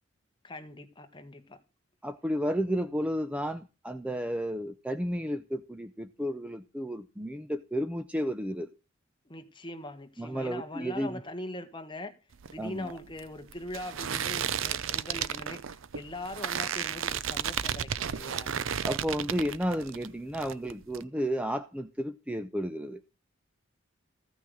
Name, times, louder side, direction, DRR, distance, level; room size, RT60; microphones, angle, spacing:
voice 1, 0.4-1.6 9.2-12.2 12.5-18.5, left 1 dB, 25° left, 1.5 m, -42 dB
voice 2, 2.0-8.7 10.2-11.2 12.6-13.0 18.8-23.0, equal, 5° right, 0.6 m, -32 dB
sound 1, 12.3-20.1 20.3-21.0, right 8 dB, 75° right, 0.6 m, -33 dB
15.0 x 6.0 x 6.3 m
head